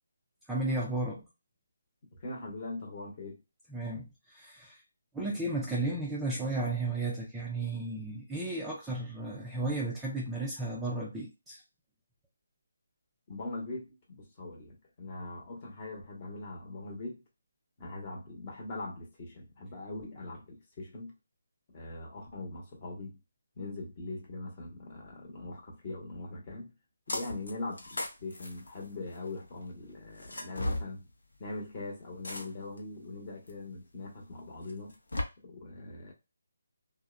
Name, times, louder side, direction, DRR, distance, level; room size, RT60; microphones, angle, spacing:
voice 1, 0.5-1.2 3.7-4.8 5.1-11.6, right 2 dB, 5° right, 0.4 m, -34 dB
voice 2, 2.1-3.4 13.3-17.2 17.8-21.1 21.7-23.2 23.6-26.7 27.1-31.1 31.4-35.0 35.4-36.1, left 2 dB, 30° left, 0.9 m, -41 dB
sound 1, 27.1-27.5 27.8-29.3 30.2-30.9 32.2-32.8 33.5-33.6 34.7-35.2, left 1 dB, 80° left, 0.7 m, -35 dB
2.7 x 2.0 x 2.4 m
figure-of-eight pair, 160°, 0 cm